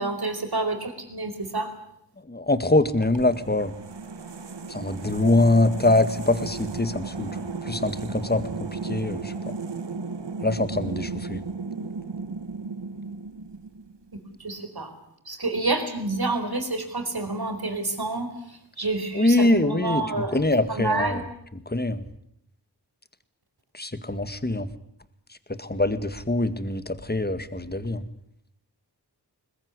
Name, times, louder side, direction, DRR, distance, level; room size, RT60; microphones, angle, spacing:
voice 1, 0.0-1.7 14.1-14.9 15.3-20.4 20.7-21.2, right 2 dB, 65° right, 7 dB, 4.8 m, -28 dB
voice 2, 2.3-3.7 4.7-7.3 7.7-8.4 8.8-9.3 10.4-11.4 19.1-20.0 20.3-21.2 21.7-22.0 23.7-24.7 25.6-28.0, left 2 dB, 25° left, 12 dB, 1.9 m, -23 dB
sound 1, 3.0-14.1, right 4 dB, 85° right, 1.5 m, -35 dB
21.5 x 21.0 x 9.8 m, 0.74 s
wide cardioid pair, 50°, 41 cm